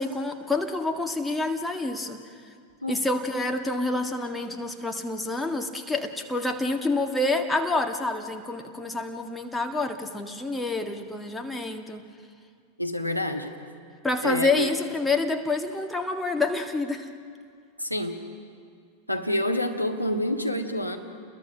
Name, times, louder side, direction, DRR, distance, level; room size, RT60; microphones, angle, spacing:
voice 1, 0.0-2.2 2.9-12.0 14.0-17.1, left 2 dB, 5° left, 4 dB, 1.8 m, -28 dB
voice 2, 12.8-13.6 14.2-14.7 17.8-18.2 19.1-21.0, left 1 dB, 90° left, 2 dB, 1.7 m, -27 dB
29.0 x 21.5 x 6.1 m, 2.3 s
figure-of-eight pair, 90°, 0 cm